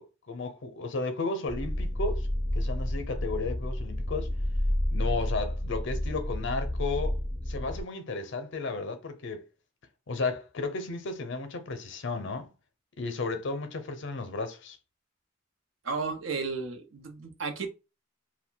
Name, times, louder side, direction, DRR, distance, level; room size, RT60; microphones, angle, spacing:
voice 1, 0.0-2.3 2.5-4.3 4.9-7.2 7.5-9.4 10.1-12.5 13.0-14.8, left 3 dB, 65° left, 0.6 m, -33 dB
sound 1, 1.5-7.8, left 1 dB, 15° left, 0.5 m, -30 dB
voice 2, 15.8-17.7, right 4 dB, 80° right, 0.7 m, -33 dB
2.4 x 2.2 x 3.7 m
head